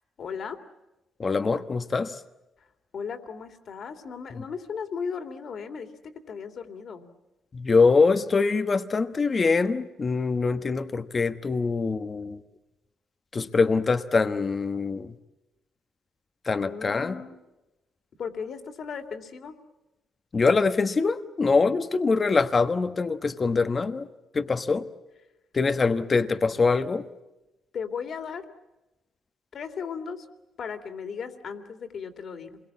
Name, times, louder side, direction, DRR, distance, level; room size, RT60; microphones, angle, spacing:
voice 1, 0.2-0.6 2.9-5.9 6.3-7.1 16.7-17.4 18.2-19.5 27.7-28.4 29.5-30.3 30.6-32.6, left 6 dB, 55° left, 2.8 m, -36 dB
voice 2, 1.2-2.1 7.5-12.4 13.3-15.1 16.5-17.2 20.3-24.1 24.3-24.8 25.5-27.0, left 4 dB, 35° left, 1.2 m, -24 dB
27.5 x 22.0 x 8.5 m
cardioid pair, 90°, 0 cm